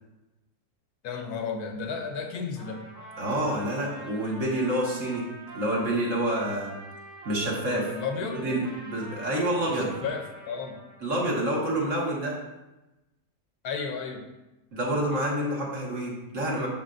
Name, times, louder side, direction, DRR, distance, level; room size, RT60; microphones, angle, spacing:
voice 1, 1.0-2.9 7.9-8.4 9.7-10.8 13.6-14.2, left 5 dB, 70° left, 5 dB, 1.2 m, -33 dB
Trumpet, 2.5-11.0, right 2 dB, 70° right, 3.2 m, -45 dB
voice 2, 3.2-5.3 5.5-6.8 7.3-7.9 8.4-9.9 11.0-12.3 14.7-16.7, right 1 dB, 50° right, -4 dB, 1.9 m, -28 dB
11.5 x 4.6 x 2.6 m, 1.0 s
omnidirectional pair, 1.7 m